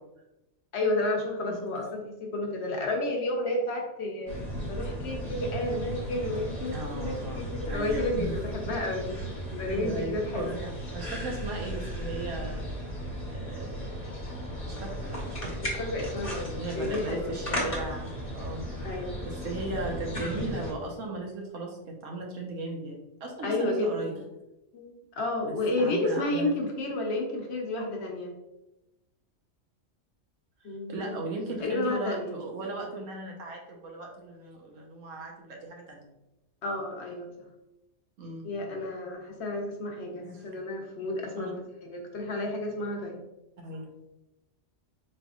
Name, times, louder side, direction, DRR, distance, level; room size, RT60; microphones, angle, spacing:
voice 1, 0.7-4.3 4.6-9.1 9.5-10.6 15.6-17.4 18.8-19.2 23.4-24.2 24.7-28.3 30.6-31.2 31.6-32.3 36.6-37.5 38.4-43.2, left 2 dB, 65° left, 1 dB, 0.9 m, -31 dB
sound 1, 4.3-20.7, equal, 30° left, 0.8 m, -35 dB
voice 2, 6.7-8.4 9.7-12.7 13.3-13.8 14.6-15.5 16.5-24.2 25.5-26.5 30.9-36.1 38.2-38.5 40.2-40.4 41.4-41.5 43.6-43.9, right 2 dB, 80° right, 0 dB, 1.2 m, -37 dB
4.1 x 3.4 x 2.3 m, 0.93 s
omnidirectional pair, 1.3 m